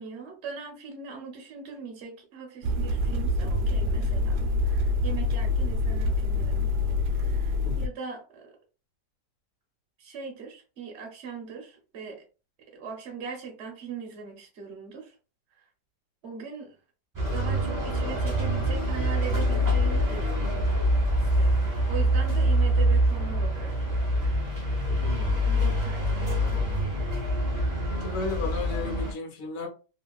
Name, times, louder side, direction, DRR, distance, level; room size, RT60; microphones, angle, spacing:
voice 1, 0.0-6.7 7.1-8.6 10.0-12.2 12.7-15.1 15.6-15.7 16.2-16.8 17.3-20.6 21.1-23.7 24.2-24.5 25.4-26.6, right 5 dB, 50° right, 1.0 m, -40 dB
sound 1, 2.6-7.9, left 2 dB, 80° right, 1.1 m, -26 dB
sound 2, 17.1-29.1, equal, 20° right, 0.5 m, -25 dB
voice 2, 24.9-25.4 27.9-29.7, left 3 dB, 60° left, 1.2 m, -34 dB
2.8 x 2.7 x 2.3 m
omnidirectional pair, 1.8 m